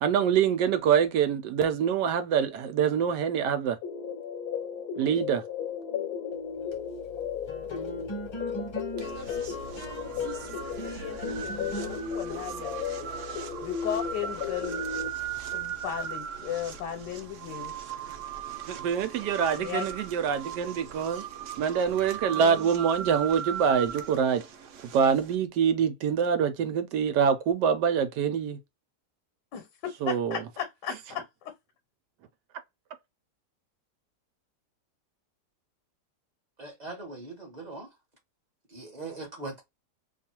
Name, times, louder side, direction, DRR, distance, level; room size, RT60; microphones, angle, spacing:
voice 1, 0.0-3.8 5.0-5.4 18.7-21.2 21.6-24.4 24.9-28.6 30.0-30.4, right 7 dB, 90° right, 1.3 m, -25 dB
sound 1, 3.8-15.1, left 7 dB, 70° left, 1.0 m, -35 dB
sound 2, 6.5-16.1, right 2 dB, 45° left, 0.3 m, -43 dB
sound 3, 9.0-25.4, right 8 dB, 65° right, 0.8 m, -38 dB
voice 2, 10.8-12.7 13.6-14.8 15.5-17.7 19.6-19.9 22.3-22.7 29.5-31.5, left 9 dB, 85° left, 1.4 m, -36 dB
voice 3, 36.6-37.9 38.7-39.6, right 3 dB, 30° right, 1.0 m, -40 dB
3.0 x 2.4 x 4.3 m
omnidirectional pair, 1.8 m